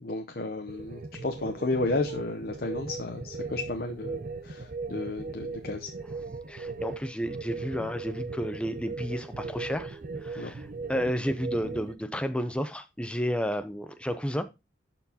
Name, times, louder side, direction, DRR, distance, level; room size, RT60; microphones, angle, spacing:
voice 1, 0.0-5.9 10.4-10.5, left 2 dB, 50° left, 0.7 m, -32 dB
sound 1, 0.7-11.9, right 4 dB, 45° right, 0.7 m, -38 dB
voice 2, 6.5-10.6 10.9-14.4, equal, 5° left, 0.5 m, -32 dB
12.0 x 4.5 x 2.8 m
head